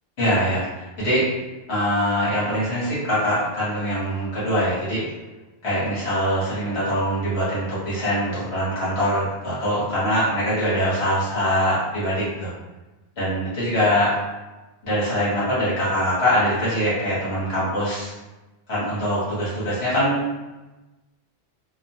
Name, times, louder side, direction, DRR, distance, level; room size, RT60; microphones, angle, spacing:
voice 1, 0.2-1.3 1.7-5.0 5.6-12.5 13.2-14.1 14.8-18.1 18.7-20.3, equal, 65° left, -10 dB, 1.3 m, -23 dB
3.0 x 2.2 x 2.6 m, 1.1 s
omnidirectional pair, 1.1 m